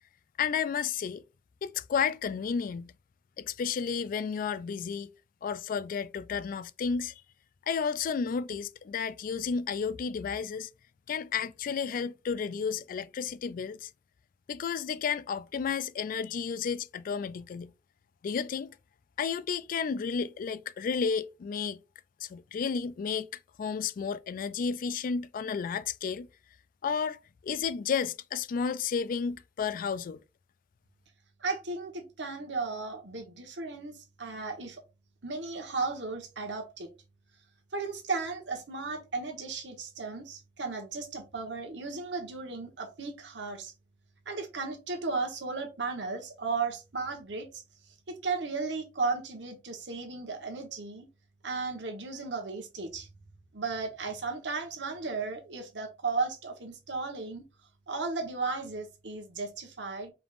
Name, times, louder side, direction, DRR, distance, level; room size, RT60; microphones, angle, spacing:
voice 1, 0.4-1.2 1.6-2.9 3.4-5.1 5.4-7.2 7.7-10.7 11.1-13.9 14.5-17.7 18.2-18.8 19.2-21.8 22.2-23.3 23.6-26.3 26.8-30.2, left 6 dB, 50° left, 0.3 m, -32 dB
voice 2, 31.4-34.8 35.2-36.9 37.7-43.7 44.3-47.6 48.1-51.1 51.4-53.1 53.5-57.4 57.9-60.1, right 4 dB, 75° right, 1.2 m, -35 dB
4.9 x 3.4 x 2.5 m
head